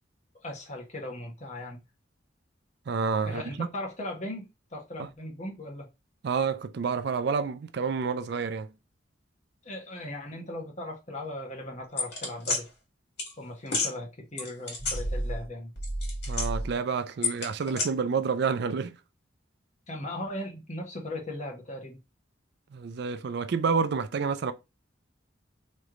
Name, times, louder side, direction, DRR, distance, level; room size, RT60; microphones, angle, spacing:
voice 1, 0.4-1.8 3.2-5.9 9.6-12.7 13.4-15.7 19.9-22.0, left 1 dB, 40° left, 1.1 m, -38 dB
voice 2, 2.9-3.7 5.0-5.1 6.2-8.7 16.3-19.0 22.7-24.5, right 5 dB, 60° right, 0.4 m, -29 dB
sound 1, 12.0-12.6 13.2-13.3 13.7-13.9 14.4-15.5 15.8-16.7 17.2-17.9, left 2 dB, 60° left, 1.9 m, -29 dB
3.2 x 3.1 x 3.7 m
head